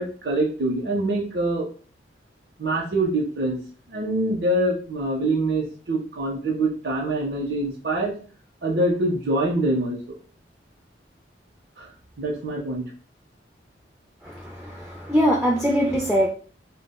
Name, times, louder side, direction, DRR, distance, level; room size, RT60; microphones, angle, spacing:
voice 1, 0.0-1.7 2.6-3.6 3.9-8.1 8.6-10.0 11.8-11.9 12.2-12.8, right 1 dB, 60° right, -3 dB, 0.5 m, -24 dB
voice 2, 14.2-16.3, equal, ahead, -2 dB, 0.3 m, -22 dB
2.2 x 2.0 x 3.5 m, 0.41 s
head